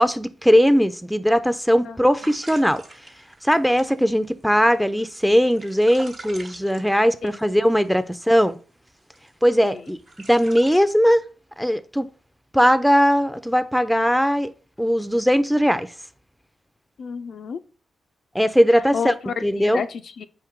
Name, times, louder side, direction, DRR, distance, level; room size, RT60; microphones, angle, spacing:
voice 1, 0.0-2.8 3.4-8.6 9.4-10.0 10.3-11.3 11.6-12.1 12.5-14.5 14.8-15.9 18.3-19.1 19.4-19.8, equal, ahead, 0.5 m, -19 dB
sound 1, 2.2-7.9 8.4-8.5 8.9-10.8, right 2 dB, 55° right, 1.1 m, -44 dB
voice 2, 17.0-17.6 18.9-20.3, left 6 dB, 70° left, 0.3 m, -30 dB
4.5 x 3.0 x 3.6 m
supercardioid pair, 45°, 0 cm